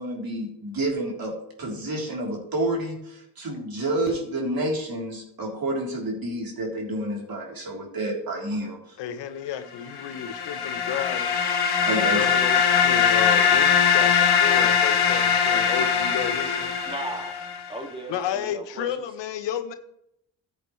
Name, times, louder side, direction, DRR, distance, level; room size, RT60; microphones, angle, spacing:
voice 1, 0.0-9.0 11.8-12.3, right 1 dB, 55° right, -1 dB, 3.6 m, -29 dB
voice 2, 9.0-11.3 12.1-16.7 18.1-19.7, left 9 dB, 80° left, 10 dB, 1.0 m, -32 dB
sound 1, 10.0-17.7, left 7 dB, 60° left, 1.8 m, -21 dB
voice 3, 16.9-18.9, right 2 dB, 10° right, 3 dB, 2.2 m, -37 dB
14.0 x 8.2 x 3.2 m, 0.77 s
supercardioid pair, 55°, 42 cm